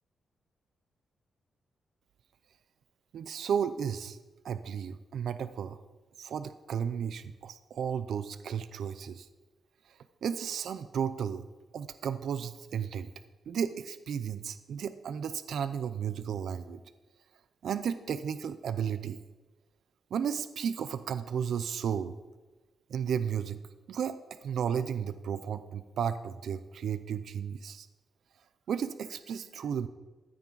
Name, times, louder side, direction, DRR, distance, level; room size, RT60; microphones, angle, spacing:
voice 1, 3.1-4.2 4.4-5.8 6.2-9.3 10.2-11.4 11.7-13.1 13.5-16.8 17.6-19.2 20.1-22.1 22.9-23.6 23.9-27.9 28.7-29.9, right 8 dB, 60° right, 12 dB, 0.5 m, -33 dB
14.0 x 9.2 x 4.0 m, 1.2 s
wide cardioid pair, 180°, 0 cm